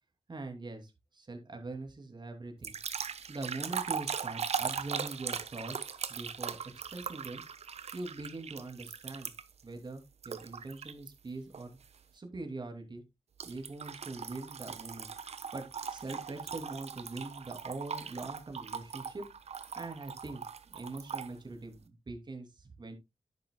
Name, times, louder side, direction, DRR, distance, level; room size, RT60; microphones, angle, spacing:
voice 1, 0.3-2.8 3.3-5.8 6.1-7.4 7.9-9.3 9.6-11.7 12.1-13.0 13.4-15.1 15.5-19.2 19.8-20.4 20.7-23.0, right 2 dB, 45° right, 5 dB, 2.7 m, -42 dB
sound 1, 2.6-9.6 10.2-11.1 11.5-11.8 13.4-21.3, right 6 dB, 75° right, 0.9 m, -39 dB
10.5 x 8.8 x 2.2 m, 0.21 s
wide cardioid pair, 90°, 11 cm